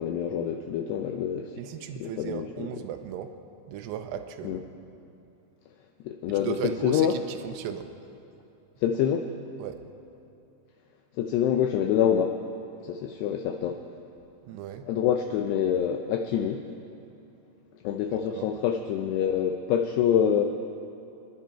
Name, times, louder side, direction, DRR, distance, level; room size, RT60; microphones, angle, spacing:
voice 1, 0.0-1.6 2.0-2.7 4.4-4.6 6.1-6.6 6.8-7.1 8.8-9.3 11.2-12.4 12.8-13.8 14.9-16.6 17.8-20.4, left 9 dB, 80° left, 4 dB, 2.5 m, -26 dB
voice 2, 1.6-3.3 3.7-4.7 6.3-7.9 9.6-9.8 14.5-14.9 18.1-18.5, right 9 dB, 80° right, 8 dB, 2.6 m, -36 dB
26.5 x 11.5 x 4.4 m, 2.8 s
omnidirectional pair, 5.2 m